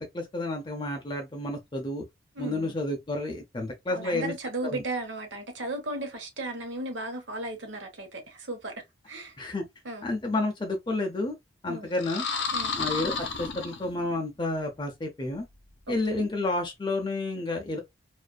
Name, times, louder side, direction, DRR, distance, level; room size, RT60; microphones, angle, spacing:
voice 1, 0.0-2.0 2.4-4.3 4.6-4.8 9.4-9.7 10.0-11.4 11.6-12.3 12.8-15.5 15.9-17.8, left 2 dB, 25° left, 0.4 m, -30 dB
voice 2, 2.3-2.8 3.9-8.7 9.1-9.4 9.8-10.1 11.7-11.9 12.5-12.7 16.1-16.2, right 2 dB, 80° right, 0.9 m, -35 dB
sound 1, 11.9-14.3, left 4 dB, 65° left, 0.7 m, -32 dB
2.4 x 2.4 x 2.2 m
head